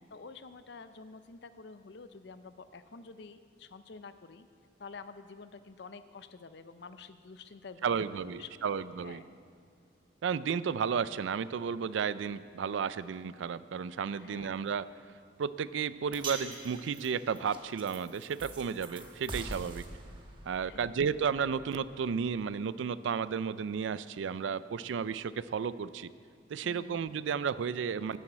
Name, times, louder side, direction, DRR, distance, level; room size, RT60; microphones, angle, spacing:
voice 1, 0.1-4.5 4.8-9.4 14.2-14.6 20.6-21.0 26.6-27.0, left 4 dB, 60° left, 11 dB, 0.5 m, -49 dB
voice 2, 7.8-9.2 10.2-14.9 15.4-19.8 20.4-26.1 26.5-28.2, right 6 dB, 75° right, 16 dB, 0.4 m, -33 dB
sound 1, 16.1-22.5, right 2 dB, 25° right, 1.2 m, -45 dB
10.5 x 7.3 x 7.9 m, 2.3 s
head